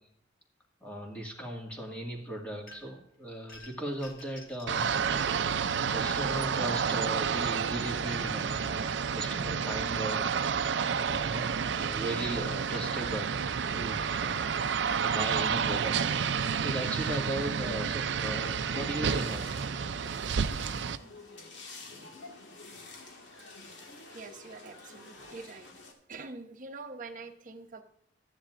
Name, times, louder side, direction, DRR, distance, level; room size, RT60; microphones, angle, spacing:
voice 1, 0.8-5.2 5.9-10.3 11.0-13.3 13.7-14.5 15.0-19.6 21.9-22.1, right 1 dB, 10° left, -1 dB, 1.9 m, -38 dB
sound 1, 2.7-3.1 3.5-4.8, left 2 dB, 50° left, 1.5 m, -51 dB
sound 2, 4.7-21.0, right 6 dB, 70° right, 0.5 m, -30 dB
sound 3, 18.2-25.9, left 3 dB, 80° left, 1.8 m, -49 dB
voice 2, 24.1-25.7 26.1-27.8, right 3 dB, 45° right, 6 dB, 0.9 m, -45 dB
12.5 x 10.0 x 2.5 m, 0.75 s
head